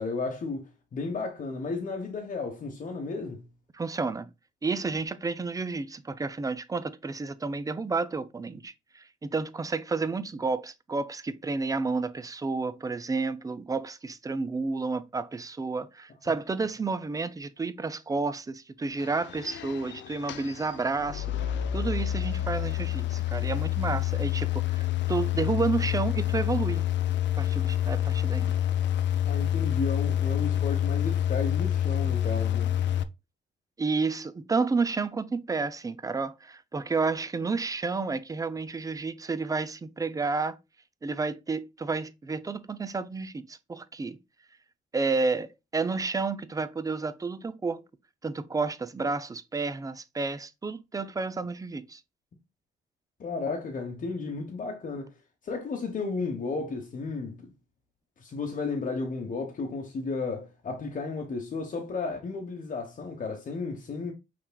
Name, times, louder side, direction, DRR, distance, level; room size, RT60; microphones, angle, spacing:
voice 1, 0.0-3.4 29.2-32.9 53.2-55.1 55.4-57.5 58.2-64.1, left 4 dB, 45° left, 1.0 m, -33 dB
voice 2, 3.7-4.3 4.6-21.3 21.7-26.9 27.4-28.5 33.8-40.6 41.0-44.2 44.9-47.8 48.2-52.0, right 4 dB, 15° right, 0.4 m, -31 dB
sound 1, 19.0-33.0, left 11 dB, 65° left, 0.5 m, -28 dB
5.7 x 3.2 x 2.2 m
cardioid pair, 90°, 20 cm